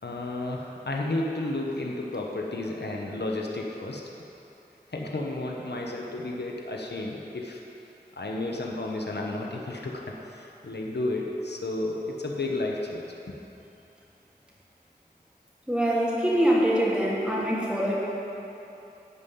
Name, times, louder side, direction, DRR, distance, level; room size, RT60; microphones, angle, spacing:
voice 1, 0.0-4.0 4.9-7.6 8.2-13.3, left 2 dB, 85° left, -1 dB, 1.1 m, -32 dB
voice 2, 15.7-17.9, equal, 5° right, -6 dB, 2.7 m, -24 dB
11.5 x 5.5 x 8.4 m, 2.9 s
wide cardioid pair, 50°, 17 cm